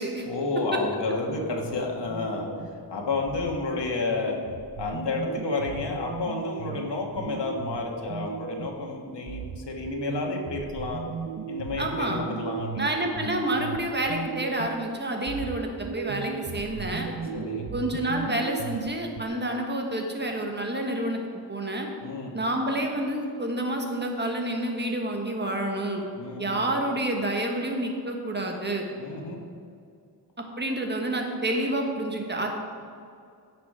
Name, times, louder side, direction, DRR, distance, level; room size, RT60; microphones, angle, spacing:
voice 1, 0.3-2.5 2.9-4.4 4.8-11.0 11.5-12.9 17.3-17.7 22.0-22.3 26.2-26.6 29.0-29.4, left 3 dB, 85° left, 0 dB, 1.7 m, -31 dB
sound 1, 1.3-2.8 3.3-8.9 9.3-14.9 15.3-19.2, right 6 dB, 70° right, 0.8 m, -37 dB
voice 2, 11.8-12.2 12.8-17.1 17.7-21.2 21.5-21.9 22.3-26.0 26.4-28.8 30.6-32.5, right 1 dB, 25° right, 2 dB, 1.4 m, -28 dB
16.0 x 5.9 x 4.9 m, 2.4 s
wide cardioid pair, 135°, 41 cm